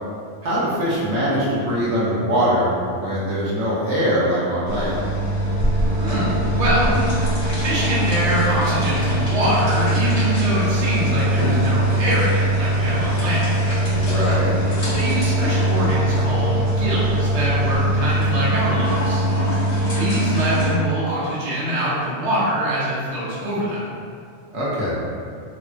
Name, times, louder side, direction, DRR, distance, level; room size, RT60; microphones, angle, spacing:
voice 1, 0.4-5.0 14.0-14.5 24.5-24.9, equal, 70° right, -8 dB, 1.0 m, -22 dB
sound 1, 4.7-20.7, right 1 dB, 60° left, 1.2 m, -21 dB
voice 2, 6.0-7.0 7.6-13.5 14.9-19.2 20.0-23.9, right 1 dB, 35° right, -9 dB, 0.8 m, -24 dB
3.4 x 2.1 x 2.5 m, 2.2 s
omnidirectional pair, 1.2 m